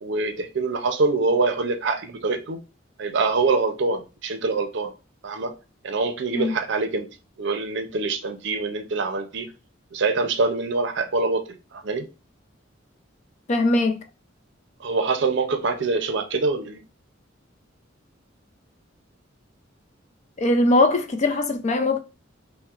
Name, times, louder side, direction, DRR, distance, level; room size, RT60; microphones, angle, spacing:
voice 1, 0.0-2.6 3.0-4.9 5.2-5.5 5.8-7.1 7.4-9.5 9.9-12.1 14.8-16.8, right 3 dB, 65° right, 0.6 m, -25 dB
voice 2, 13.5-14.0 20.4-22.0, left 2 dB, 35° left, 0.4 m, -20 dB
5.6 x 2.1 x 2.4 m
head